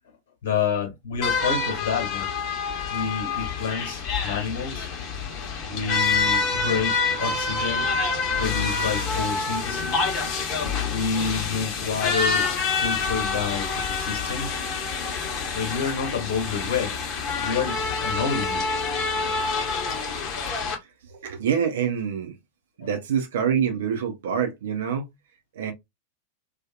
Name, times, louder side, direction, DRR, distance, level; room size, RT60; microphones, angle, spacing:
voice 1, 0.4-2.3 2.9-4.9 5.7-7.9 8.4-10.0 10.9-14.6 15.5-16.9 17.4-18.6, left 6 dB, 55° left, 1.2 m, -29 dB
sound 1, 1.2-20.7, left 4 dB, 35° left, 1.0 m, -27 dB
voice 2, 21.1-22.3 22.8-25.1 25.5-25.7, right 7 dB, 60° right, 0.7 m, -26 dB
2.7 x 2.4 x 2.3 m
figure-of-eight pair, 90°, 0 cm